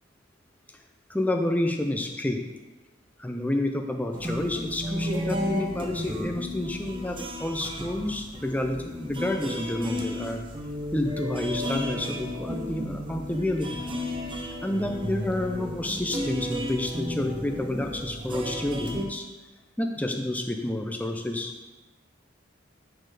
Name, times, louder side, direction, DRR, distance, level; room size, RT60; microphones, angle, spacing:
voice 1, 1.1-2.4 3.2-10.5 10.9-13.8 14.6-19.2 19.8-21.5, left 1 dB, 10° left, 3 dB, 0.5 m, -29 dB
sound 1, 4.1-19.0, equal, 25° right, 0.7 m, -33 dB
6.5 x 4.2 x 4.9 m, 1.1 s
head